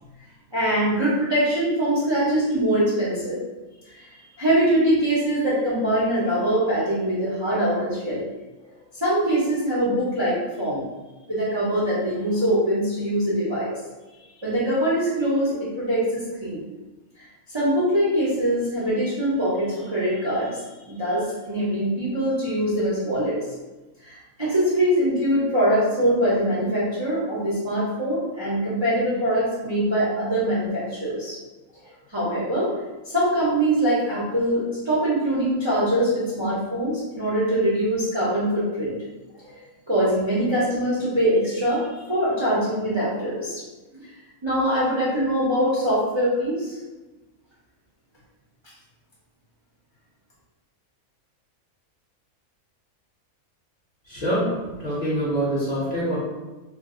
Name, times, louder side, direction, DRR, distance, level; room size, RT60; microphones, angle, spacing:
voice 1, 0.5-3.4 3.9-4.1 4.4-8.2 8.9-10.8 11.3-13.7 14.4-16.6 17.5-23.4 24.0-31.4 32.1-32.7 33.0-39.0 39.4-39.5 39.9-43.6 43.9-44.1 44.4-46.8, right 1 dB, 35° right, -9 dB, 0.4 m, -23 dB
voice 2, 54.1-54.5 54.8-56.2, right 1 dB, 40° left, -8 dB, 0.7 m, -25 dB
2.5 x 2.0 x 3.6 m, 1.1 s
omnidirectional pair, 1.5 m